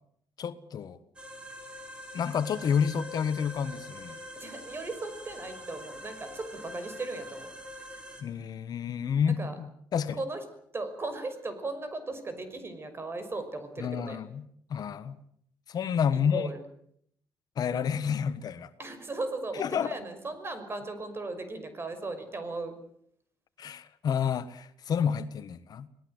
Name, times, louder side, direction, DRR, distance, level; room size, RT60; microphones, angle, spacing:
voice 1, 0.4-1.0 2.1-4.2 8.2-10.2 13.8-14.4 14.7-15.2 15.7-16.5 17.6-18.7 19.6-19.9 23.6-25.9, left 7 dB, 55° left, 13 dB, 1.4 m, -29 dB
sound 1, 1.2-8.2, left 1 dB, 15° right, 5.5 m, -44 dB
voice 2, 4.3-7.5 9.4-9.5 10.2-10.4 10.7-14.2 16.1-16.6 18.8-22.8, right 3 dB, 30° right, 10 dB, 5.8 m, -37 dB
26.5 x 19.0 x 8.0 m, 0.68 s
cardioid pair, 85°, 8 cm